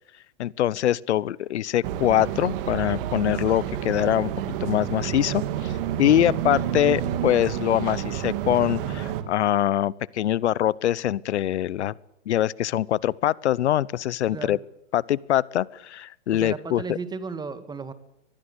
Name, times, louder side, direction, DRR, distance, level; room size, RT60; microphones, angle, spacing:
voice 1, 0.4-4.3 4.6-5.7 6.0-11.9 12.3-14.6 14.9-17.0, left 12 dB, 80° left, 24 dB, 0.8 m, -23 dB
sound 1, 1.8-9.2, right 10 dB, 55° right, 2.9 m, -29 dB
voice 2, 14.3-14.6 16.3-17.9, right 4 dB, 10° right, 12 dB, 2.0 m, -35 dB
23.0 x 21.0 x 8.1 m, 0.77 s
hypercardioid pair, 135°, 34 cm